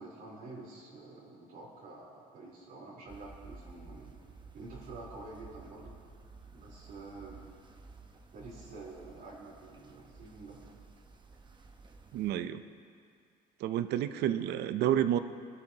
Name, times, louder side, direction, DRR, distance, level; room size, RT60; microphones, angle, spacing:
voice 1, 0.0-4.1 4.5-6.0 6.5-7.4 8.3-10.6 14.1-14.3, right 3 dB, 60° right, -6 dB, 3.8 m, -48 dB
sound 1, 3.1-12.3, right 4 dB, 25° right, 0.9 m, -53 dB
voice 2, 12.1-12.6 13.6-15.2, right 11 dB, 80° right, 11 dB, 0.6 m, -29 dB
21.0 x 11.0 x 2.9 m, 2.2 s
cardioid pair, 110°, 17 cm